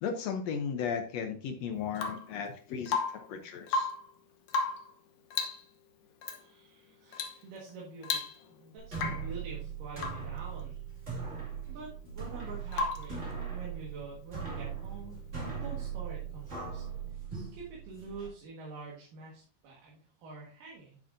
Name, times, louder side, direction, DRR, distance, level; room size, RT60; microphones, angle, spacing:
voice 1, 0.0-3.0 3.3-3.9, left 6 dB, 80° left, 5 dB, 1.5 m, -35 dB
Rain / Water tap faucet / Drip, 1.9-2.3 2.9-3.3 3.6-4.1 4.5-4.9 5.3-5.7 6.2-6.4 7.1-7.4 7.7-7.8 8.0-8.6 8.9-9.3 10.0-10.3 12.7-13.2 15.1-15.2, left 4 dB, 65° left, 1.5 m, -34 dB
voice 2, 6.3-8.3 8.6-10.8 11.7-15.2 15.5-16.8 17.5-21.0, right 4 dB, 70° right, -3 dB, 3.2 m, -46 dB
sound 1, 8.8-18.3, right 6 dB, 25° right, 2.2 m, -39 dB
9.7 x 7.2 x 2.6 m, 0.41 s
omnidirectional pair, 4.0 m